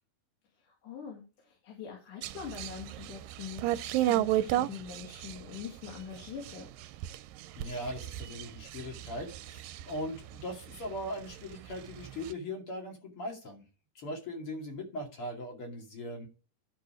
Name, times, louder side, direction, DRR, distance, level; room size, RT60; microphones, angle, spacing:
voice 1, 0.6-6.7, left 8 dB, 70° left, -1 dB, 3.8 m, -44 dB
sound 1, 2.2-11.0 11.3-12.3, right 14 dB, 85° right, 2.3 m, -33 dB
voice 2, 7.5-13.6 13.9-16.3, left 1 dB, 40° left, 0 dB, 3.0 m, -39 dB
12.5 x 4.8 x 4.9 m, 0.33 s
omnidirectional pair, 3.9 m